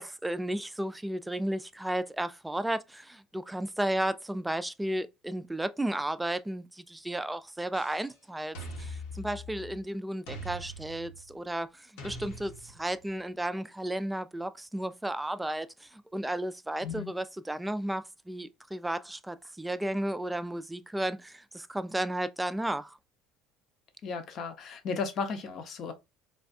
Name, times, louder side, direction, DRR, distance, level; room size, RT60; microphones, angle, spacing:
voice 1, 0.0-23.0, right 1 dB, 10° right, 0.3 m, -33 dB
sound 1, 7.7-8.1 8.5-9.8 10.3-11.4 12.0-13.0, equal, 75° left, 1.0 m, -42 dB
voice 2, 24.0-25.9, left 5 dB, 55° left, 0.8 m, -35 dB
3.4 x 2.2 x 2.5 m
supercardioid pair, 85°, 0 cm